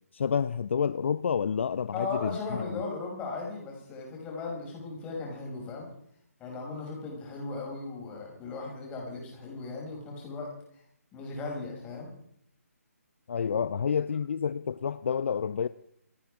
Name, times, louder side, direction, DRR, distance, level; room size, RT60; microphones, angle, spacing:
voice 1, 0.1-2.4 2.7-2.8 13.3-15.7, left 7 dB, 50° left, 15 dB, 0.5 m, -29 dB
voice 2, 1.9-5.9 6.4-10.5 11.1-12.1, left 3 dB, 15° left, -1 dB, 5.8 m, -37 dB
27.5 x 10.0 x 5.0 m, 0.70 s
figure-of-eight pair, 140°, 8 cm